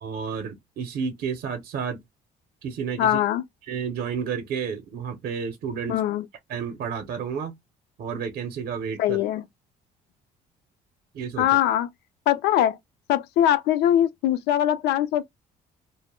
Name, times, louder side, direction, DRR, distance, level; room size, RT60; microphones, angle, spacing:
voice 1, 0.0-2.0 2.6-3.2 3.7-6.0 6.5-7.5 8.0-9.2 11.1-11.6, right 6 dB, 60° right, 0.6 m, -31 dB
voice 2, 3.0-3.4 5.9-6.3 9.0-9.4 11.4-11.9 12.3-12.8 13.1-15.2, left 11 dB, 85° left, 0.4 m, -22 dB
2.1 x 2.0 x 3.0 m
cardioid pair, 110°, 17 cm